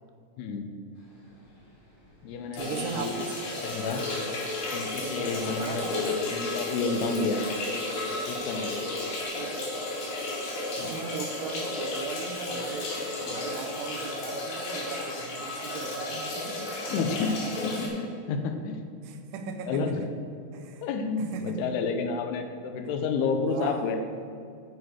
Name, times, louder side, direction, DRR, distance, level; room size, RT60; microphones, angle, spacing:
voice 1, 0.4-0.7 2.2-3.2 3.6-4.0 4.7-7.5 8.2-8.8 10.8-11.0 16.9-18.8 19.7-20.0 20.8-24.0, left 4 dB, 90° left, 6 dB, 2.8 m, -30 dB
sound 1, 0.9-9.3, left 1 dB, 50° left, 3.7 m, -50 dB
voice 2, 2.5-3.4 5.0-6.1 9.2-9.8 10.8-12.9 13.3-16.7 19.0-20.1 20.5-20.8 21.2-21.6 23.5-23.9, right 6 dB, 90° right, 5 dB, 2.9 m, -38 dB
sound 2, 2.6-17.9, left 2 dB, 70° left, 4.0 m, -33 dB
9.3 x 8.5 x 4.8 m, 2.4 s
omnidirectional pair, 4.6 m